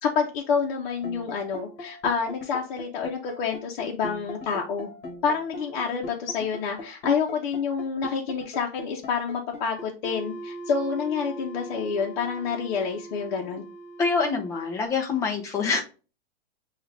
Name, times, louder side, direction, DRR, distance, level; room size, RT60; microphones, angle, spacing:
voice 1, 0.0-4.9 5.2-13.6, left 6 dB, 50° left, 0 dB, 0.7 m, -28 dB
sound 1, 0.9-14.9, equal, 35° left, 1.3 m, -40 dB
voice 2, 14.0-15.8, left 4 dB, 10° left, 3 dB, 0.4 m, -25 dB
6.0 x 2.4 x 3.2 m, 0.33 s
supercardioid pair, 155°, 30 cm